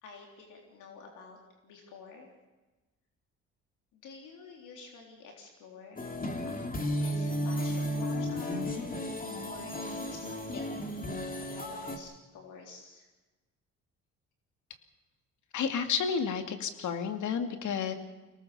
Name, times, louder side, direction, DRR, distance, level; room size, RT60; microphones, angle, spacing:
voice 1, 0.0-1.4 1.6-2.3 3.9-6.1 6.5-8.8 9.4-11.0 11.4-13.1, left 4 dB, 90° left, 1 dB, 3.7 m, -50 dB
sound 1, 6.0-12.0, equal, 30° left, 2.9 m, -34 dB
voice 2, 15.5-17.9, left 6 dB, 75° left, 7 dB, 2.4 m, -31 dB
24.5 x 19.0 x 6.9 m, 1.1 s
cardioid pair, 90°, 30 cm